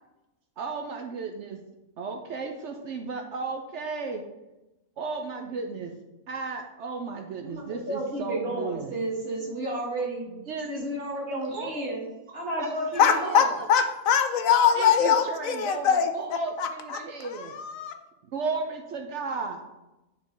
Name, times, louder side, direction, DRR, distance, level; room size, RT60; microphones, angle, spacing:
voice 1, 0.6-1.6 2.0-4.2 5.0-5.9 6.3-8.9 10.3-10.7 11.4-11.7 12.6-12.7 13.1-13.3 13.6-13.7 14.8-17.5 18.3-19.6, right 4 dB, 65° right, 3 dB, 0.9 m, -34 dB
voice 2, 7.5-10.3 10.7-12.0 12.3-13.5, right 1 dB, 45° right, -3 dB, 1.9 m, -32 dB
voice 3, 13.0-16.1 16.6-16.7 17.4-17.9, left 7 dB, 80° left, 7 dB, 1.1 m, -22 dB
9.3 x 3.6 x 3.8 m, 0.99 s
omnidirectional pair, 1.4 m